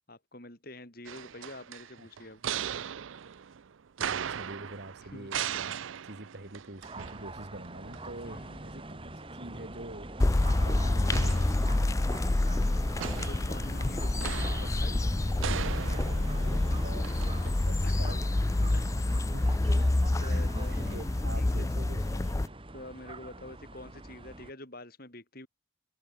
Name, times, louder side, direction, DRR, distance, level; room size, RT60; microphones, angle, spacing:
voice 1, 0.1-2.4 5.1-5.3 8.2-8.6 13.1-15.1 17.8-19.1 19.4-19.5 20.1-20.8 21.4-21.7 22.7-25.5, left 1 dB, 50° left, 5.3 m, -47 dB
sound 1, 1.0-7.7 7.9-8.0 11.1-12.2 13.0-17.5, right 8 dB, 75° right, 0.5 m, -38 dB
voice 2, 4.0-5.8 6.0-10.1 10.6-11.7 16.2-18.3 19.3-19.9 20.2-22.6, right 1 dB, 55° right, 2.4 m, -46 dB
sound 2, 6.8-24.5, right 2 dB, 25° right, 2.3 m, -44 dB
sound 3, 10.2-22.5, left 2 dB, 15° left, 0.3 m, -28 dB
head